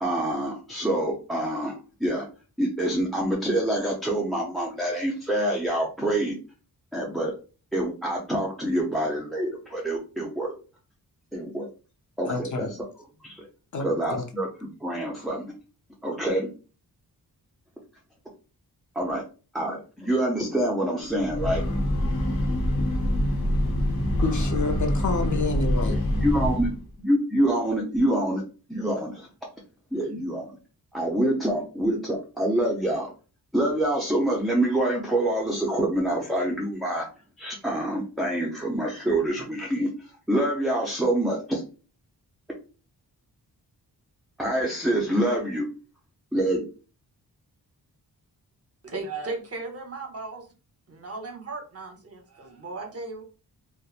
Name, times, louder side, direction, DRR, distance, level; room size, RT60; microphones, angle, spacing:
voice 1, 0.0-2.3 2.6-6.3 6.9-7.3 7.7-10.5 11.3-11.7 12.2-12.8 13.2-13.5 13.8-15.5 16.0-16.5 19.0-19.2 19.5-21.6 25.9-26.7 27.0-28.4 28.7-29.3 29.9-30.5 30.9-33.1 33.5-37.1 37.4-39.9 40.3-41.6 44.4-45.7 46.3-46.6, right 1 dB, ahead, -2 dB, 0.5 m, -26 dB
voice 2, 12.3-12.7 13.7-14.2 24.2-26.0, left 3 dB, 50° left, 3 dB, 0.7 m, -28 dB
Breathing / Train, 21.1-26.9, left 1 dB, 65° left, 1.0 m, -25 dB
voice 3, 48.8-50.5 50.9-53.2, right 3 dB, 40° right, 3 dB, 0.7 m, -36 dB
2.9 x 2.2 x 2.4 m, 0.35 s
wide cardioid pair, 105°, 38 cm